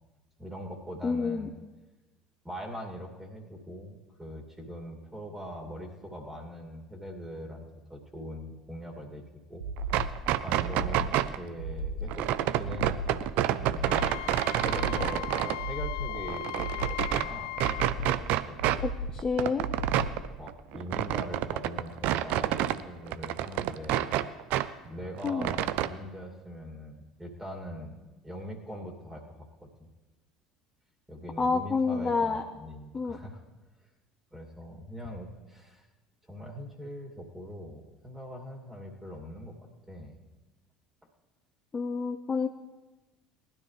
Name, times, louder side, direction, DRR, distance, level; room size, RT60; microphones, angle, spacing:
voice 1, 0.4-1.5 2.4-7.6 7.9-9.2 9.5-9.7 10.3-13.2 13.5-14.1 14.6-17.5 18.1-18.9 20.4-24.2 24.8-28.0 28.2-29.9 31.1-33.4 34.3-35.9 36.3-39.6 39.9-40.2, equal, 10° right, 0 dB, 2.5 m, -42 dB
voice 2, 1.0-1.5 18.8-19.6 25.2-25.5 31.4-32.4 32.9-33.2 41.7-42.5, left 4 dB, 25° left, 4 dB, 0.8 m, -28 dB
sound 1, 9.6-10.2 10.6-11.2 11.6-12.2 12.6-13.2 13.6-14.2 14.6-15.2 15.6-16.2 16.6-17.2 17.6-18.2 18.6-19.2 19.6-20.2, right 1 dB, 90° right, 1.1 m, -35 dB
sound 2, 9.8-11.4 12.1-15.6 16.0-17.3 17.6-18.8 19.1-22.8 23.1-24.7 25.0-25.9, right 13 dB, 60° right, 0.5 m, -28 dB
Wind instrument woodwind instrument, 13.8-17.9, left 17 dB, 65° left, 0.4 m, -38 dB
19.0 x 12.5 x 3.3 m, 1.1 s
figure-of-eight pair, 65°, 3 cm